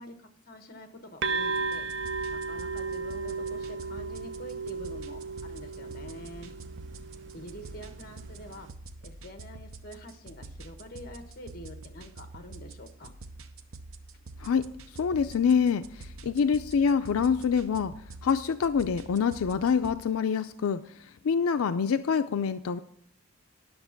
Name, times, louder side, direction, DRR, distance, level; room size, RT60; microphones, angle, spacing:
voice 1, 0.0-6.5 7.3-8.7 9.0-13.1, equal, 45° left, 6 dB, 1.3 m, -46 dB
sound 1, 1.2-8.7, right 4 dB, 55° right, 0.5 m, -35 dB
sound 2, 1.5-20.0, right 2 dB, 85° right, 0.8 m, -47 dB
voice 2, 15.0-17.9 18.2-20.8 21.2-22.8, left 6 dB, 90° left, 10 dB, 0.4 m, -26 dB
10.5 x 6.7 x 5.8 m, 0.67 s
head